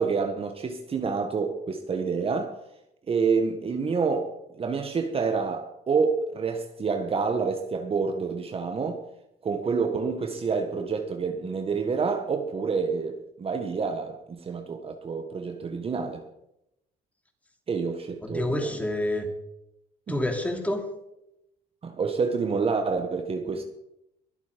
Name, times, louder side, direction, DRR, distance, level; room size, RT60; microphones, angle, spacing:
voice 1, 0.0-2.6 3.1-9.0 9.4-16.2 17.7-18.8 20.1-20.2 21.8-23.6, right 5 dB, 35° right, 1.5 m, -28 dB
voice 2, 18.2-19.3 20.1-20.8, left 1 dB, 10° left, 3.2 m, -28 dB
22.5 x 8.3 x 5.2 m
cardioid pair, 110°, 17 cm